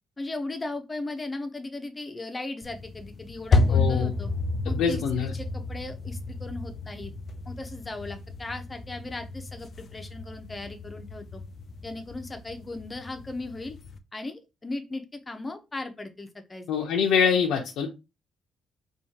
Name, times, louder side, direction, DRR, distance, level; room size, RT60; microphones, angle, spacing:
voice 1, 0.2-4.3 4.6-7.1 7.4-11.4 11.8-13.8 14.1-16.7, left 2 dB, 25° left, 6 dB, 1.0 m, -37 dB
sound 1, 2.6-14.0, left 3 dB, 55° left, 0.5 m, -31 dB
voice 2, 3.7-4.1 4.6-5.3 16.7-17.9, left 6 dB, 85° left, 1 dB, 0.9 m, -24 dB
6.3 x 2.7 x 2.9 m, 0.25 s
cardioid pair, 90°, 0 cm